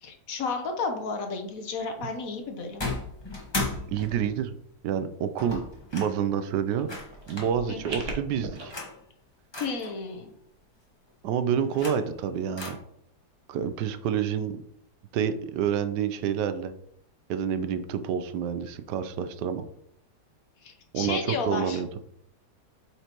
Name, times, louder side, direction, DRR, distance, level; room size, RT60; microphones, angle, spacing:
voice 1, 0.0-2.8 7.7-8.0 9.6-10.3 20.6-21.8, left 4 dB, 60° left, 5 dB, 1.2 m, -32 dB
sound 1, 2.8-4.4 5.4-6.2 6.9-7.5 8.6-9.0 9.5-9.9 11.5-12.2 12.6-12.7, left 2 dB, 20° left, 1.0 m, -35 dB
voice 2, 3.9-4.5 4.8-5.6 5.9-6.9 7.3-8.7 11.2-12.8 13.5-14.6 15.1-16.7 17.3-19.6 20.9-21.9, right 8 dB, 80° right, 10 dB, 1.2 m, -28 dB
sound 2, 6.7-8.6, right 3 dB, 50° right, 1.3 m, -39 dB
8.2 x 4.4 x 2.9 m, 0.72 s
omnidirectional pair, 1.8 m